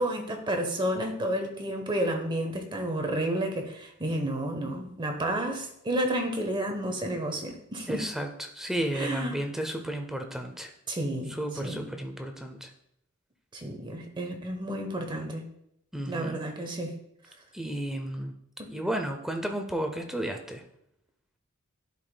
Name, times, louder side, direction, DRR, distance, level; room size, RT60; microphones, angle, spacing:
voice 1, 0.0-8.0 8.9-9.4 10.9-11.3 11.6-11.9 13.5-15.4 16.1-16.9 18.6-18.7, right 1 dB, 20° right, 4 dB, 0.9 m, -31 dB
voice 2, 7.9-10.7 11.3-12.7 15.9-16.4 17.5-18.3 18.7-20.6, right 1 dB, ahead, 4 dB, 0.5 m, -33 dB
10.5 x 5.0 x 2.2 m, 0.75 s
head